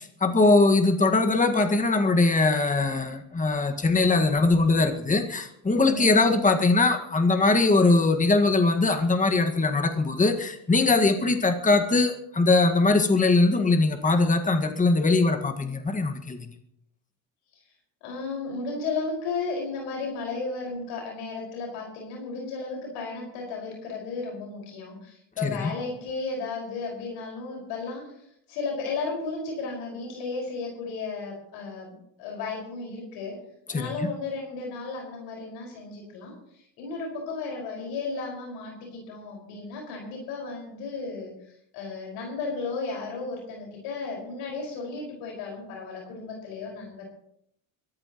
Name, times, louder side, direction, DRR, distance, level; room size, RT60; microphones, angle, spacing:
voice 1, 0.0-16.5 25.4-25.7 33.7-33.9, left 3 dB, 20° left, 5 dB, 1.8 m, -21 dB
voice 2, 5.9-6.2 18.0-33.4 33.7-41.3 41.7-47.1, left 4 dB, 90° left, -1 dB, 5.7 m, -34 dB
23.5 x 14.5 x 3.1 m, 0.72 s
cardioid pair, 105°, 41 cm